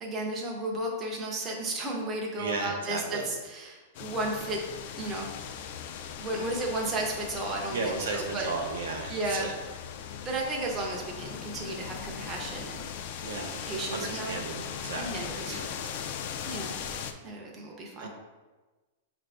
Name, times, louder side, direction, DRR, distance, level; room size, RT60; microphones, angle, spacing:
voice 1, 0.0-4.6 5.0-5.3 6.2-8.5 9.1-9.5 10.2-12.8 13.5-14.4 15.0-15.6 16.5-16.7 17.2-18.1, right 2 dB, 15° right, -1 dB, 0.5 m, -33 dB
voice 2, 2.4-3.3 7.7-9.5 13.2-13.5 13.9-15.9 18.0-18.1, right 3 dB, 80° right, 2 dB, 0.8 m, -35 dB
sound 1, 3.9-17.1, left 8 dB, 45° left, 0.3 m, -39 dB
6.0 x 2.5 x 3.3 m, 1.2 s
supercardioid pair, 170°, 0 cm